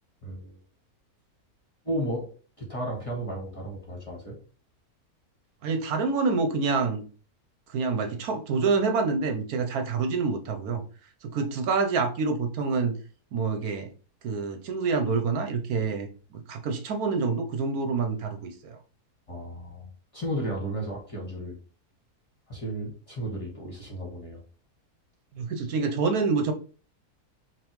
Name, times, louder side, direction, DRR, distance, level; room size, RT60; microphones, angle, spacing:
voice 1, 0.2-0.6 1.8-2.2 2.6-4.4 19.3-19.9 20.1-21.6 22.5-24.4, right 1 dB, 20° left, 1.4 m, -33 dB
voice 2, 5.6-7.0 7.7-10.8 11.2-13.0 13.3-13.9 14.2-18.8 25.4-26.5, right 4 dB, 75° right, 1.2 m, -27 dB
5.2 x 2.7 x 3.0 m
omnidirectional pair, 1.6 m